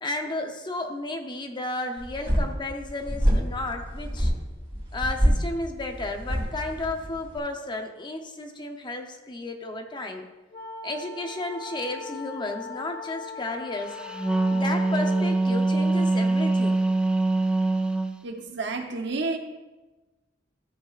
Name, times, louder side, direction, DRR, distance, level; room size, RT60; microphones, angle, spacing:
voice 1, 0.0-4.3 4.9-10.3 10.8-14.0 14.5-16.8, left 2 dB, 25° left, 4 dB, 0.8 m, -33 dB
sound 1, 2.0-7.4, equal, 30° right, 3.3 m, -27 dB
sound 2, 10.5-15.4, left 4 dB, 45° left, 2.1 m, -39 dB
Wind instrument woodwind instrument, 14.0-18.2, right 2 dB, 5° right, 0.4 m, -23 dB
voice 2, 18.2-19.4, right 3 dB, 65° right, 5 dB, 1.0 m, -30 dB
14.0 x 7.9 x 2.5 m, 1.2 s
head